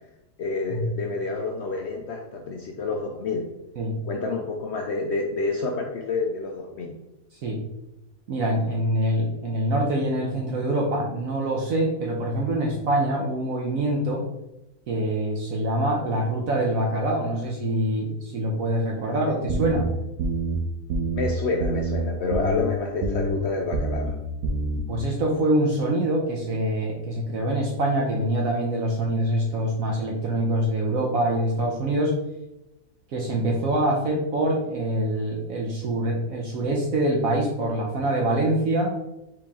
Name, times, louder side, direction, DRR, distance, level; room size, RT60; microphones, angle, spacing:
voice 1, 0.4-3.5 4.0-6.9 21.1-24.1, left 3 dB, 75° left, 1 dB, 0.6 m, -28 dB
voice 2, 8.3-14.2 14.9-19.9 24.9-32.1 33.1-39.0, right 1 dB, 65° right, -2 dB, 1.0 m, -25 dB
sound 1, 19.5-19.8 20.2-20.6 20.9-21.3 21.6-22.0 22.3-22.7 23.0-23.4 23.7-24.1 24.4-24.8, right 2 dB, 90° right, 1.2 m, -26 dB
4.7 x 3.0 x 3.5 m, 0.94 s
omnidirectional pair, 1.7 m